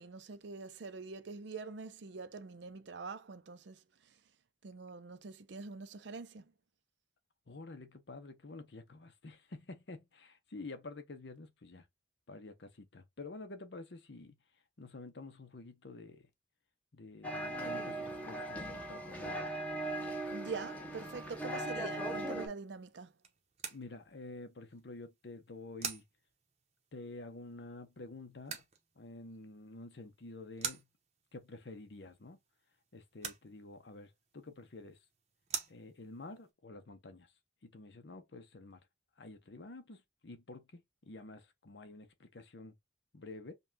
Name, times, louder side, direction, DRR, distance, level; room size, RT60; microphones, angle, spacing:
voice 1, 0.0-4.2 4.6-6.5 20.3-23.1, right 4 dB, 70° right, 0.5 m, -45 dB
voice 2, 7.5-11.9 12.3-14.3 14.8-16.3 16.9-19.5 23.7-26.0 26.9-28.6 29.0-30.9 31.3-32.4 32.9-35.0 35.7-37.3 37.6-38.8 39.2-42.8 43.1-43.5, left 2 dB, 65° left, 0.8 m, -49 dB
sound 1, 17.2-22.5, right 1 dB, 10° left, 0.9 m, -39 dB
sound 2, 21.6-36.5, right 6 dB, 35° right, 0.8 m, -48 dB
5.3 x 2.3 x 2.6 m
head